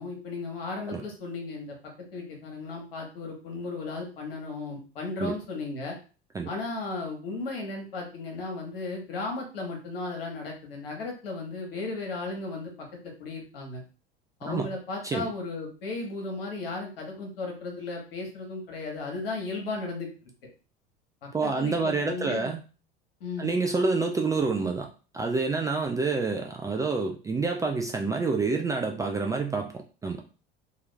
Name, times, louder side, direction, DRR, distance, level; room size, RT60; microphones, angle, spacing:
voice 1, 0.0-1.7 2.1-6.0 6.5-12.7 13.0-13.8 14.4-20.1 21.4-22.5 23.2-23.5, left 3 dB, 70° left, 1 dB, 1.2 m, -35 dB
voice 2, 21.3-22.6 23.4-24.9 25.1-30.2, right 4 dB, 10° right, 2 dB, 0.3 m, -28 dB
2.9 x 2.3 x 3.3 m, 0.36 s
figure-of-eight pair, 70°, 29 cm